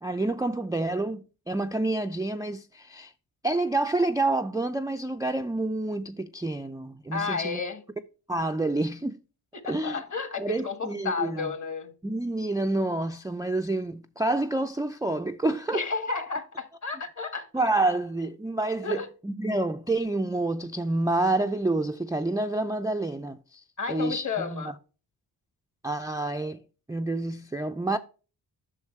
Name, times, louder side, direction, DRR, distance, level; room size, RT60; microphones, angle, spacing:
voice 1, 0.0-3.1 3.4-7.6 8.3-9.2 9.7-10.0 10.4-11.5 12.0-15.9 17.5-24.8 25.8-26.6 26.9-28.0, right 2 dB, 10° right, 0.3 m, -28 dB
voice 2, 7.1-7.8 9.6-11.9 15.7-17.5 18.8-19.1 23.8-24.7, left 5 dB, 40° left, 1.5 m, -32 dB
8.3 x 6.3 x 3.1 m
cardioid pair, 80°, 43 cm